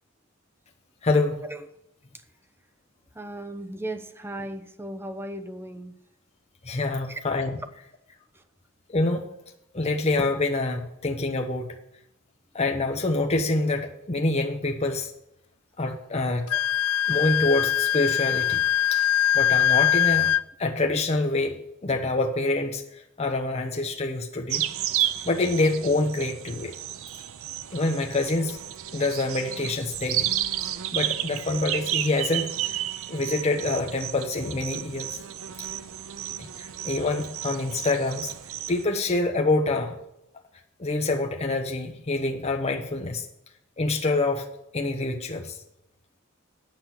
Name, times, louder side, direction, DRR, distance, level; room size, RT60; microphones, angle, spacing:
voice 1, 1.0-1.4 6.6-7.6 8.9-9.3 9.7-11.8 12.5-15.1 15.8-16.5 17.1-18.6 18.9-19.0 19.3-22.8 23.2-24.7 25.0-26.7 27.7-28.6 28.9-30.3 30.9-32.8 33.1-35.2 35.6-35.7 36.4-38.3 38.7-40.0 40.8-43.3 43.8-45.6, left 2 dB, 30° left, 3 dB, 0.8 m, -26 dB
voice 2, 3.1-5.9 7.0-7.2 8.3-8.4, right 1 dB, 10° right, 9 dB, 0.7 m, -36 dB
Wind instrument woodwind instrument, 16.5-20.4, left 11 dB, 85° left, 0.4 m, -22 dB
sound 1, 24.5-38.8, right 12 dB, 75° right, 0.5 m, -32 dB
9.0 x 5.9 x 7.6 m, 0.83 s
head